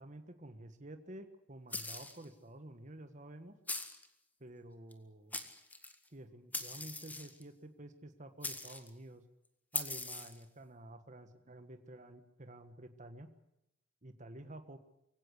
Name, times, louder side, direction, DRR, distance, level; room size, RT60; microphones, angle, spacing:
voice 1, 0.0-3.6 4.4-5.4 6.1-9.2 9.7-13.3 14.0-14.8, right 1 dB, 40° right, 8 dB, 1.5 m, -51 dB
sound 1, 1.7-2.2 3.7-4.1 4.9-5.0 5.3-5.9 6.5-7.4 8.4-8.9 9.7-10.4, left 2 dB, 10° left, 1.7 m, -41 dB
23.5 x 16.5 x 8.3 m, 0.86 s
head